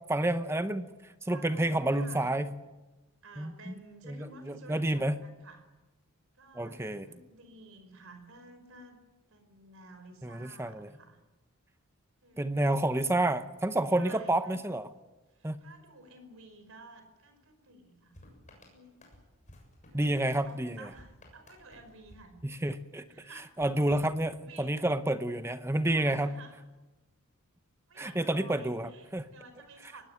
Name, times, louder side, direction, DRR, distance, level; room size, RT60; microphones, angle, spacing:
voice 1, 0.1-0.9 1.2-2.5 3.4-3.7 4.0-5.1 6.5-7.1 10.2-10.9 12.4-14.9 15.4-15.6 19.9-20.9 22.4-23.0 23.6-26.4 28.0-29.2, right 1 dB, 10° right, 10 dB, 0.8 m, -29 dB
voice 2, 1.3-2.3 3.2-5.7 6.3-9.0 9.3-11.2 12.2-12.8 13.9-14.6 15.3-18.2 18.6-19.0 19.9-22.3 23.1-23.5 24.3-24.8 25.9-26.6 27.9-30.1, right 2 dB, 65° right, 8 dB, 5.2 m, -53 dB
sound 1, 18.1-23.0 23.6-24.8, left 1 dB, 35° left, 7.2 m, -57 dB
24.0 x 19.5 x 9.2 m, 1.1 s
head